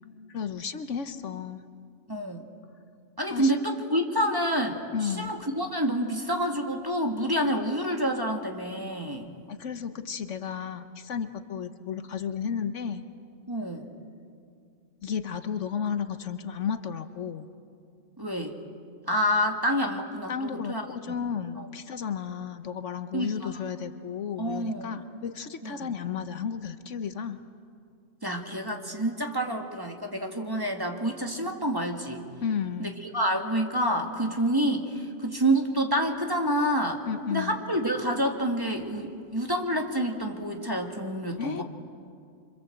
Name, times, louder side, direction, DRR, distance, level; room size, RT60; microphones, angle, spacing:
voice 1, 0.3-1.6 3.3-3.6 4.9-5.3 9.5-13.0 15.0-17.5 20.3-27.4 32.4-32.9 37.0-37.6 41.4-41.6, left 7 dB, 70° left, 10 dB, 1.3 m, -33 dB
voice 2, 2.1-2.5 3.2-9.3 13.5-13.9 18.2-18.6 19.1-20.8 21.6-21.7 23.1-23.5 24.4-25.0 25.6-25.9 28.2-32.2 32.8-37.0 37.3-41.6, equal, 15° right, 2 dB, 2.0 m, -28 dB
26.5 x 25.5 x 7.9 m, 2.4 s
omnidirectional pair, 1.3 m